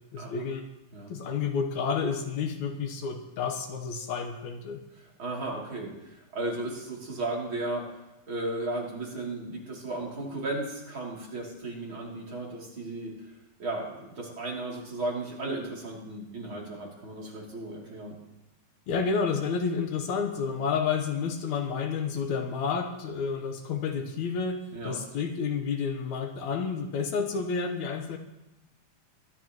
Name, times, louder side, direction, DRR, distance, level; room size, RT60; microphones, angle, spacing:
voice 1, 0.1-0.6 1.1-4.8 18.9-28.2, left 5 dB, 70° left, 5 dB, 2.3 m, -30 dB
voice 2, 4.9-7.9 8.3-13.3 13.6-18.2 24.7-25.0, right 2 dB, 40° right, -3 dB, 3.6 m, -35 dB
23.0 x 11.5 x 3.0 m, 0.95 s
omnidirectional pair, 3.7 m